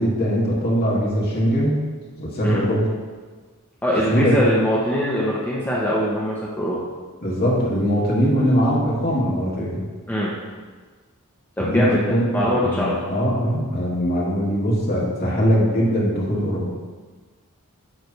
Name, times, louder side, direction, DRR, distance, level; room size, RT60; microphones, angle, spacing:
voice 1, 0.0-1.8 2.2-2.8 4.1-4.4 7.2-9.8 11.6-16.7, equal, 45° left, -5 dB, 2.0 m, -21 dB
voice 2, 3.8-6.8 10.1-10.4 11.6-13.0, equal, 10° left, -6 dB, 0.9 m, -22 dB
8.9 x 3.4 x 6.7 m, 1.4 s
head